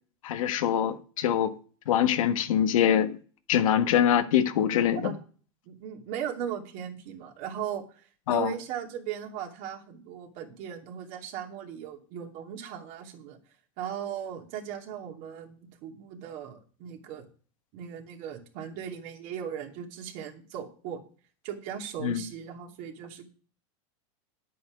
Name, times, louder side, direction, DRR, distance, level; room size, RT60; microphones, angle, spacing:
voice 1, 0.2-1.5 1.9-3.2 3.5-5.1 8.3-8.5 22.0-22.2, left 9 dB, 85° left, 1.4 m, -24 dB
voice 2, 5.6-13.4 13.8-17.3 17.7-21.0 21.4-23.3, right 9 dB, 50° right, 2.7 m, -38 dB
10.5 x 8.5 x 5.2 m
supercardioid pair, 140°, 17 cm